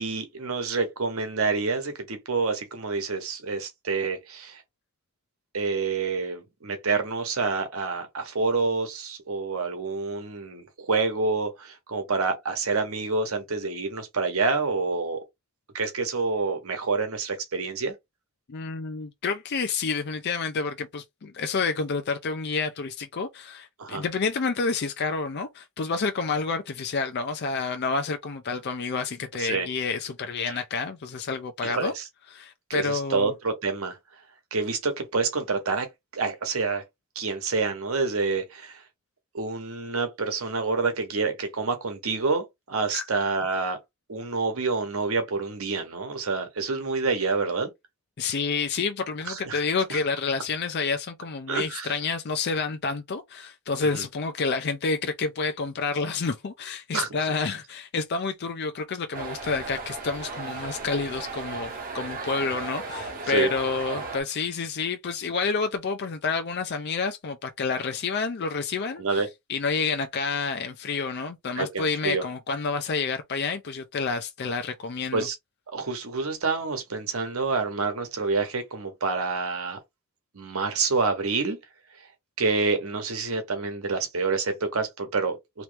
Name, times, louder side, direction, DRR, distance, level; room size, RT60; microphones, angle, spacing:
voice 1, 0.0-4.6 5.5-15.2 15.7-17.9 23.8-24.0 29.4-29.7 30.5-30.6 31.6-32.0 32.7-34.0 34.5-35.9 36.1-36.8 37.1-38.8 39.3-43.8 44.1-47.7 49.3-49.6 49.9-50.0 51.5-52.0 53.9-54.0 56.9-57.1 63.3-63.5 69.0-69.3 71.6-72.2 75.1-75.3 75.7-79.8 80.3-81.6 82.4-85.6, right 4 dB, 80° right, 1.0 m, -27 dB
voice 2, 18.5-31.9 32.3-33.3 42.9-43.0 48.2-69.2 69.5-75.3, left 4 dB, 50° left, 0.5 m, -29 dB
sound 1, 59.1-64.2, right 4 dB, 40° right, 1.1 m, -35 dB
3.1 x 3.0 x 3.3 m
head